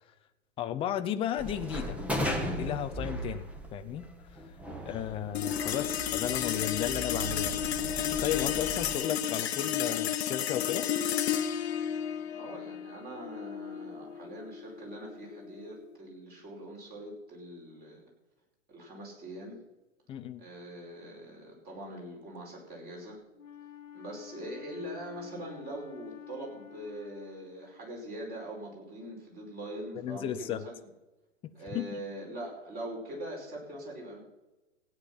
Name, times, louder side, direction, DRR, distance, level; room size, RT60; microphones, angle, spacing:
voice 1, 0.6-2.0 2.5-4.0 4.3-4.5 4.8-7.6 7.9-10.9 20.1-20.4 29.9-30.6 31.4-32.0, left 10 dB, 15° left, 9 dB, 0.6 m, -34 dB
sound 1, 1.4-8.9, equal, 5° right, 1.4 m, -37 dB
sound 2, 5.3-16.0, left 10 dB, 55° left, 1.1 m, -32 dB
voice 2, 12.3-18.1 18.7-19.6 20.4-23.2 23.9-30.7 31.5-34.2, right 1 dB, 25° right, 0 dB, 5.2 m, -42 dB
Wind instrument woodwind instrument, 23.3-28.1, left 10 dB, 90° left, 1.1 m, -50 dB
16.0 x 9.0 x 5.7 m, 1.1 s
hypercardioid pair, 125°, 37 cm